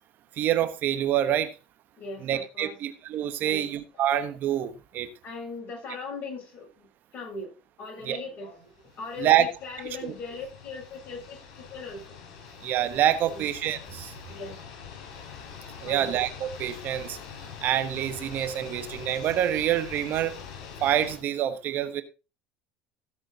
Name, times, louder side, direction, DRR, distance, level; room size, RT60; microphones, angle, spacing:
voice 1, 0.4-1.5 2.2-5.1 8.0-8.2 9.2-9.5 10.0-10.1 12.6-14.1 15.8-17.2 17.6-20.3 20.8-22.0, right 11 dB, 55° right, 10 dB, 1.3 m, -26 dB
voice 2, 2.0-2.8 3.4-3.7 5.2-6.9 7.1-7.5 7.8-12.2 13.2-13.4 14.3-14.6 15.8-16.2, left 3 dB, 50° left, 0 dB, 7.6 m, -39 dB
sound 1, 8.7-21.2, left 7 dB, 75° left, 5.4 m, -44 dB
16.0 x 6.3 x 4.1 m, 0.30 s
hypercardioid pair, 80°, 4 cm